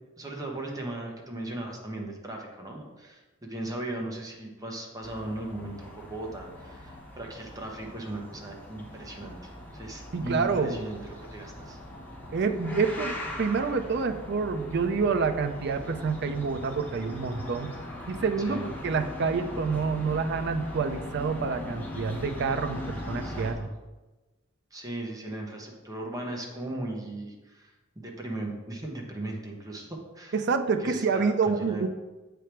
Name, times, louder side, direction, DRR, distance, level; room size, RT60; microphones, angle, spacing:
voice 1, 0.2-11.8 18.4-18.8 23.2-23.7 24.7-30.3 30.8-31.9, right 1 dB, 15° right, 0 dB, 1.0 m, -38 dB
sound 1, 5.0-23.5, left 1 dB, 10° left, 1.0 m, -40 dB
voice 2, 10.1-10.8 12.3-17.7 18.1-23.7 30.3-31.9, right 5 dB, 55° right, 9 dB, 0.5 m, -28 dB
7.4 x 3.4 x 4.4 m, 1.1 s
head